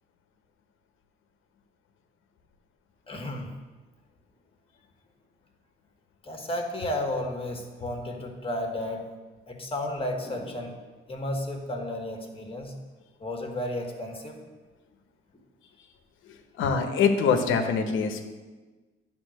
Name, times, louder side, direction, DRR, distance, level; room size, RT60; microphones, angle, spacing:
voice 1, 3.1-3.5 6.2-9.0 9.5-10.7 11.1-12.7 13.2-14.4, left 1 dB, 25° left, 2 dB, 1.6 m, -33 dB
voice 2, 16.6-18.3, left 5 dB, 85° left, 6 dB, 1.0 m, -24 dB
9.9 x 3.7 x 6.4 m, 1.3 s
cardioid pair, 90°, 20 cm